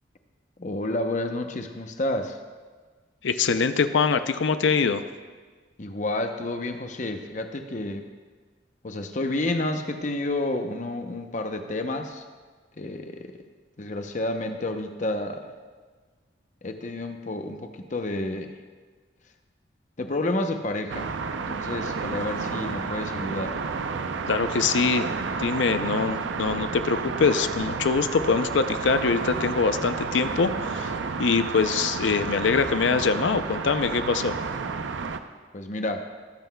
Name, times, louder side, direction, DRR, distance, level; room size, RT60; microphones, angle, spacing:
voice 1, 0.6-2.4 5.8-8.1 8.8-12.2 12.8-13.4 13.8-15.5 16.6-18.6 20.0-21.1 21.5-23.6 35.5-36.1, left 2 dB, 40° left, 6 dB, 0.7 m, -30 dB
voice 2, 3.2-5.0 24.3-25.1 25.4-30.9 31.2-34.4, left 5 dB, 85° left, 11 dB, 0.5 m, -23 dB
sound 1, 20.9-35.2, right 5 dB, 85° right, 0.5 m, -31 dB
19.5 x 7.9 x 2.2 m, 1.4 s
head